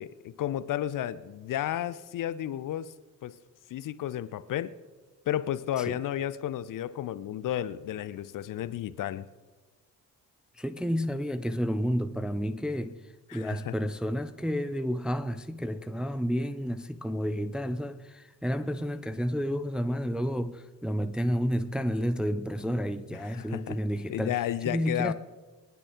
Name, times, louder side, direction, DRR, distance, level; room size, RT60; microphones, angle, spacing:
voice 1, 0.0-2.9 3.2-3.4 3.7-4.7 5.3-9.3 13.3-13.7 23.2-23.8 24.1-25.1, left 12 dB, 40° left, 0.7 m, -32 dB
voice 2, 10.6-13.0 13.3-24.4 24.7-25.1, equal, ahead, 0.5 m, -30 dB
24.5 x 10.0 x 3.7 m
figure-of-eight pair, 40°, 48 cm